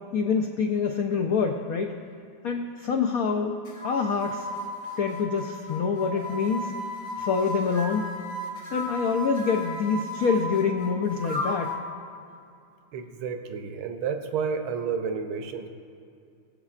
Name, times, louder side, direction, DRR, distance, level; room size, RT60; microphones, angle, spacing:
voice 1, 0.1-2.0 2.4-4.5 5.0-6.7 7.2-8.1 8.7-11.8, left 5 dB, 85° left, 4 dB, 0.7 m, -26 dB
sound 1, 3.7-11.8, left 1 dB, 50° left, 1.7 m, -34 dB
voice 2, 12.9-15.7, right 6 dB, 85° right, 6 dB, 1.6 m, -31 dB
21.0 x 7.3 x 2.5 m, 2.5 s
omnidirectional pair, 2.2 m